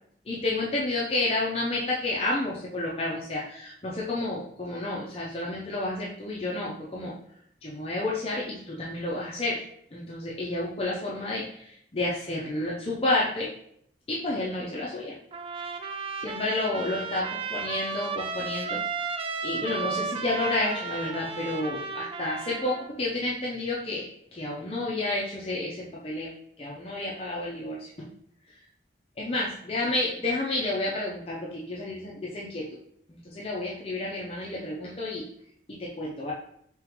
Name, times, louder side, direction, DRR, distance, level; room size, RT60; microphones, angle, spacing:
voice 1, 0.3-7.1 7.6-9.6 9.9-13.5 14.1-15.2 16.2-18.8 19.4-26.3 26.6-28.1 29.2-32.8 33.2-35.3 35.8-36.3, left 2 dB, 35° left, -4 dB, 0.5 m, -30 dB
Trumpet, 15.3-22.9, right 5 dB, 30° right, 0.3 m, -34 dB
3.8 x 3.6 x 2.9 m, 0.69 s
head